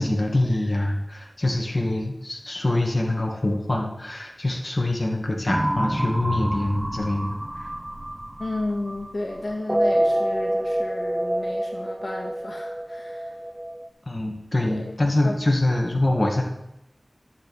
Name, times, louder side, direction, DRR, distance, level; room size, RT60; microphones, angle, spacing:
voice 1, 0.0-7.4 14.1-16.4, left 1 dB, 40° left, 0 dB, 1.7 m, -24 dB
sound 1, 5.5-9.1 9.5-13.9, right 1 dB, 15° right, 0.5 m, -27 dB
voice 2, 8.4-13.3 14.7-15.4, left 2 dB, 70° left, 0 dB, 1.7 m, -33 dB
11.5 x 7.3 x 4.7 m, 0.86 s
wide cardioid pair, 65°, 0 cm